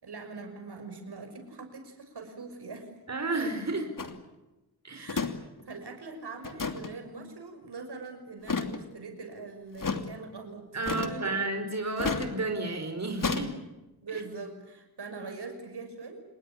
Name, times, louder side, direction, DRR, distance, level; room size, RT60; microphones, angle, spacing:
voice 1, 0.0-2.9 4.9-5.3 5.6-11.4 14.0-16.2, right 4 dB, 80° right, 6 dB, 6.0 m, -42 dB
voice 2, 3.1-3.9 4.8-5.1 10.7-13.5 14.1-14.2, right 2 dB, 40° right, 5 dB, 4.7 m, -32 dB
sound 1, 4.0-4.2 5.1-5.3 5.6-5.7 6.4-6.9 8.4-8.8 9.8-10.0 10.8-11.3 12.0-12.3 13.2-13.5, left 4 dB, 55° left, 2.8 m, -31 dB
27.5 x 21.0 x 8.6 m, 1.0 s
wide cardioid pair, 85°, 39 cm